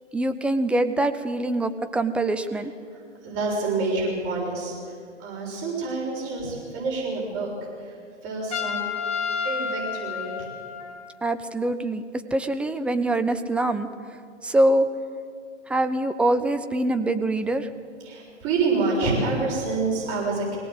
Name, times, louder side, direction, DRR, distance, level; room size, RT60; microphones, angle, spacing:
voice 1, 0.1-2.7 11.2-12.0 12.3-13.9 14.4-14.9 15.7-17.7, right 1 dB, 5° right, 9 dB, 0.5 m, -24 dB
voice 2, 2.9-4.7 5.2-7.5 7.8-8.0 8.2-8.8 9.4-10.3 18.0-20.6, right 3 dB, 35° right, -2 dB, 7.0 m, -27 dB
Trumpet, 8.5-11.2, left 6 dB, 20° left, 2.7 m, -30 dB
23.0 x 18.0 x 8.1 m, 2.2 s
figure-of-eight pair, 120°, 36 cm